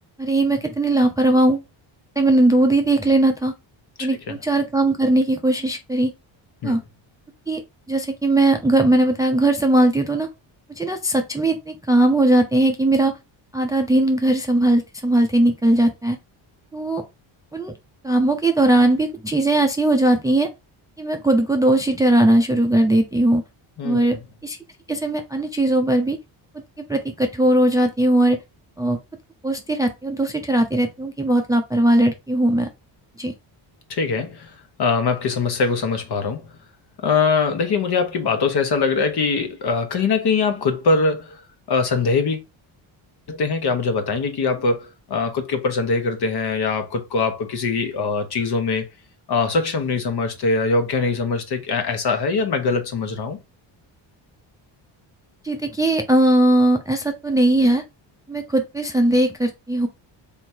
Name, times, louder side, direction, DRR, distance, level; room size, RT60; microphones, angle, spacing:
voice 1, 0.2-1.6 2.2-3.5 4.0-6.1 6.6-6.8 7.5-7.6 7.9-10.3 10.8-13.1 13.5-16.2 16.7-17.0 17.5-17.7 18.0-20.5 21.0-23.4 23.8-24.2 24.4-24.6 24.9-26.2 26.9-28.4 28.8-29.0 29.4-32.7 33.2-33.3 55.4-57.8 58.3-59.9, right 1 dB, 10° right, 0.5 m, -19 dB
voice 2, 4.0-4.4 6.6-6.8 23.8-24.2 33.9-36.5 37.0-41.4 41.7-42.4 43.3-48.9 49.3-53.4, left 4 dB, 50° left, 1.2 m, -22 dB
3.6 x 3.1 x 4.4 m
cardioid pair, 115°, 48 cm